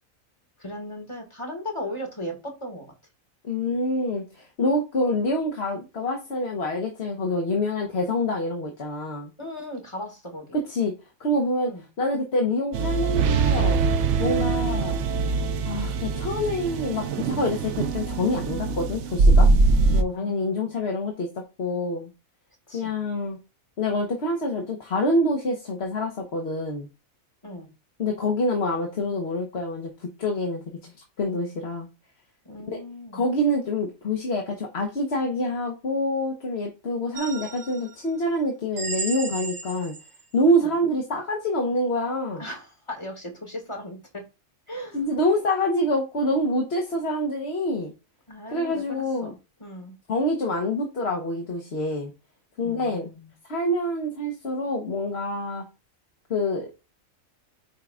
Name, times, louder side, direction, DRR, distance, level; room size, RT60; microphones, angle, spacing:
voice 1, 0.6-2.9 9.4-10.5 11.7-11.8 14.4-14.6 19.7-20.7 22.7-22.9 27.4-27.7 32.5-33.2 40.6-40.7 42.4-44.2 44.7-45.0 48.3-50.0 52.6-53.3, left 1 dB, 20° left, 2 dB, 1.9 m, -37 dB
voice 2, 3.4-9.3 10.7-10.9 11.2-13.8 14.2-15.0 15.6-19.5 19.9-21.3 21.6-22.1 22.7-23.4 23.8-26.9 28.0-31.9 32.7-32.8 33.1-39.9 40.3-42.4 44.9-47.9 48.5-49.3 50.1-52.1 52.6-53.1 53.5-55.6 56.3-56.8, left 1 dB, 50° left, 1 dB, 1.3 m, -26 dB
sound 1, 12.7-20.0, right 3 dB, 65° right, 0.9 m, -22 dB
sound 2, 37.1-37.9 38.8-40.2, right 4 dB, 45° right, 1.1 m, -34 dB
9.2 x 4.7 x 2.4 m, 0.29 s
omnidirectional pair, 1.4 m